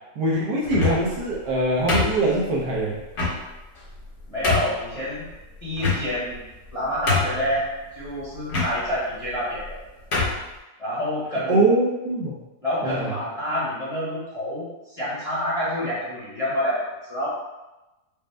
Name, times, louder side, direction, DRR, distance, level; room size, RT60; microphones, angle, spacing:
voice 1, 0.2-3.0 11.5-12.4 12.8-13.1, right 2 dB, 75° right, -3 dB, 1.4 m, -22 dB
sound 1, 0.6-1.2 1.9-2.6 3.1-3.4 4.0-4.1 4.4-4.8 5.8-6.3 6.7-6.8 7.1-7.5 8.5-8.7 9.6-9.7 10.1-10.4, left 3 dB, 45° left, 1.3 m, -24 dB
voice 2, 4.3-5.3 5.6-6.4 6.7-7.7 7.9-9.8 10.8-11.7 12.6-17.3, equal, 25° left, -9 dB, 1.0 m, -27 dB
5.2 x 2.1 x 3.3 m, 1.0 s
omnidirectional pair, 1.9 m